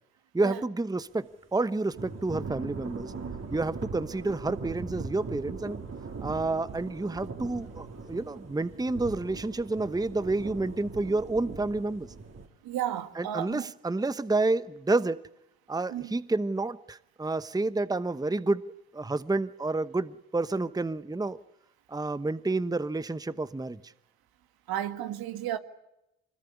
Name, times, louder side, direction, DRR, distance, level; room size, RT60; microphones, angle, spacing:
voice 1, 0.3-3.1 3.5-5.8 6.2-12.1 13.1-15.3 15.7-18.6 18.9-21.4 21.9-23.8, right 2 dB, 10° right, 1.0 m, -29 dB
Thunder / Rain, 1.9-12.5, right 4 dB, 40° right, 4.2 m, -40 dB
voice 2, 12.6-13.6 15.9-16.1 24.7-25.6, right 11 dB, 70° right, 1.9 m, -33 dB
25.0 x 21.0 x 9.9 m
hypercardioid pair, 50°, 38 cm